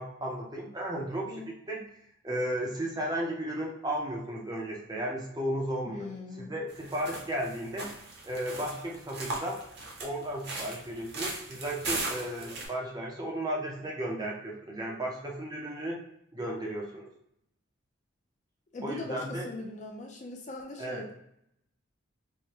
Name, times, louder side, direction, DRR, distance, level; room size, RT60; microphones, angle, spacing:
voice 1, 0.0-1.4 1.7-1.9 2.2-6.1 6.4-7.9 8.2-9.6 10.0-16.0 16.3-17.1 18.8-19.5 20.8-21.1, right 1 dB, 20° right, -1 dB, 0.5 m, -34 dB
voice 2, 5.8-6.6 18.7-21.1, left 2 dB, 35° left, 2 dB, 0.4 m, -41 dB
sound 1, 6.7-12.7, right 2 dB, 50° right, 0.8 m, -38 dB
4.6 x 2.1 x 2.8 m, 0.74 s
head